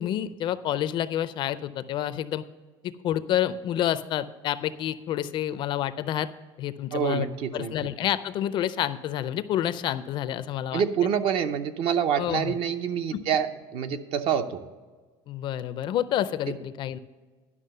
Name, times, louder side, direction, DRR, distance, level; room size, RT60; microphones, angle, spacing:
voice 1, 0.0-2.4 3.0-6.3 6.6-10.8 12.2-12.6 13.1-13.3 15.3-17.0, left 11 dB, 40° left, 14 dB, 0.4 m, -29 dB
voice 2, 6.9-7.7 10.7-14.6, right 8 dB, 50° right, 10 dB, 0.7 m, -26 dB
11.0 x 6.0 x 6.5 m, 1.3 s
cardioid pair, 150°, 12 cm